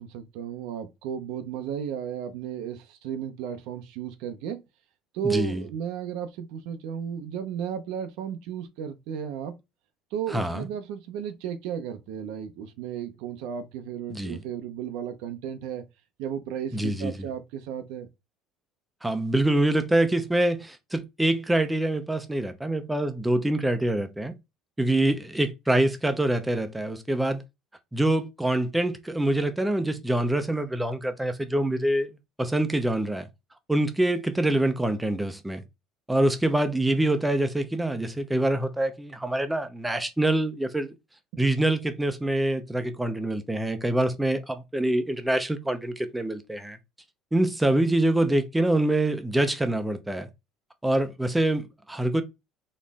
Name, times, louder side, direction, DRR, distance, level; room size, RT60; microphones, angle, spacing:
voice 1, 0.0-4.6 5.1-9.6 10.1-15.8 16.2-18.1 41.3-41.4, right 8 dB, 75° right, 0.7 m, -34 dB
voice 2, 5.2-5.6 10.3-10.7 14.1-14.4 16.7-17.1 19.0-24.3 24.8-27.4 27.9-32.1 32.4-33.3 33.7-35.6 36.1-40.9 41.4-46.8 47.3-50.3 50.8-52.2, right 1 dB, 5° right, 0.7 m, -25 dB
4.2 x 3.1 x 3.5 m
cardioid pair, 135°, 0 cm